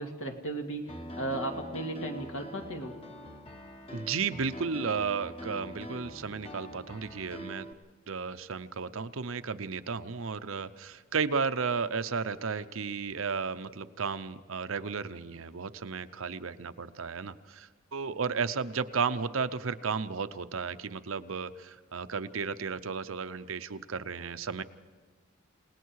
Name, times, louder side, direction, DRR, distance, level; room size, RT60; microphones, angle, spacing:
voice 1, 0.0-3.0, right 2 dB, 70° left, 3 dB, 2.4 m, -36 dB
Piano, 0.9-7.7, equal, 25° left, 1.3 m, -44 dB
voice 2, 3.9-7.7 8.1-24.6, right 5 dB, 75° right, 11 dB, 0.7 m, -33 dB
29.5 x 18.5 x 4.8 m, 1.5 s
head